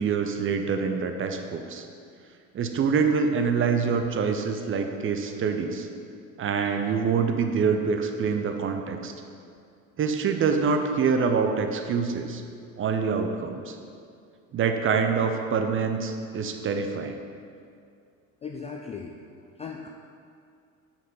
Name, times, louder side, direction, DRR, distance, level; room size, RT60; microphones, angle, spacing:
voice 1, 0.0-1.8 2.5-5.9 6.4-9.1 10.0-12.4 12.8-13.8 14.5-17.2, right 5 dB, 30° right, 5 dB, 0.7 m, -25 dB
voice 2, 18.4-19.1 19.6-19.9, left 5 dB, 15° left, 1 dB, 0.3 m, -37 dB
5.9 x 5.7 x 5.4 m, 2.3 s
figure-of-eight pair, 60°, 43 cm